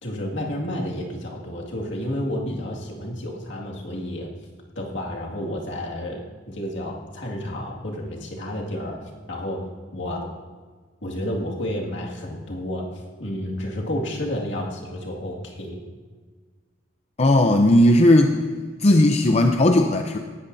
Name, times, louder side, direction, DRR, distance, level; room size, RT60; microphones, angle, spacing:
voice 1, 0.0-4.3 4.8-9.0 9.3-9.6 9.9-10.3 11.0-15.8, left 1 dB, 65° left, -2 dB, 2.1 m, -30 dB
voice 2, 17.2-18.4 18.8-20.2, left 1 dB, 35° left, 4 dB, 0.6 m, -16 dB
18.0 x 13.0 x 2.7 m, 1.5 s
head